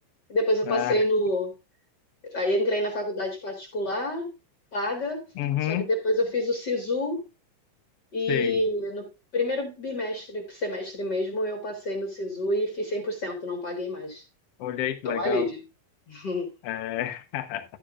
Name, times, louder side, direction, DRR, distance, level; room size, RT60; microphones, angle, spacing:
voice 1, 0.3-1.5 2.2-4.3 4.7-5.3 5.6-7.2 8.1-14.2 15.0-15.6 16.1-16.5, left 1 dB, 45° left, 1.5 m, -28 dB
voice 2, 5.4-5.9 8.3-8.6 14.6-15.5 16.6-17.6, left 12 dB, 75° left, 1.4 m, -29 dB
11.5 x 10.0 x 2.4 m
omnidirectional pair, 4.0 m